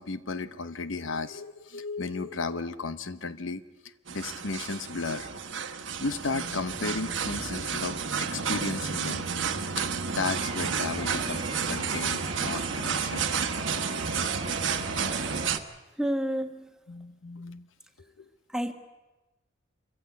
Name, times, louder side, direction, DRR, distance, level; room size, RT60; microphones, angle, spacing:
voice 1, 0.0-3.6 4.1-5.3 6.0-9.9 10.1-13.3 14.2-14.3 16.9-17.7 18.2-18.3, left 3 dB, 80° left, 13 dB, 0.9 m, -34 dB
sound 1, 4.1-15.6, right 6 dB, 75° right, 1.3 m, -31 dB
sound 2, 10.4-15.6, right 4 dB, 25° right, 1.4 m, -40 dB
voice 2, 16.0-16.7 18.5-18.7, equal, 5° right, 6 dB, 1.4 m, -29 dB
25.5 x 15.5 x 9.5 m, 1.1 s
head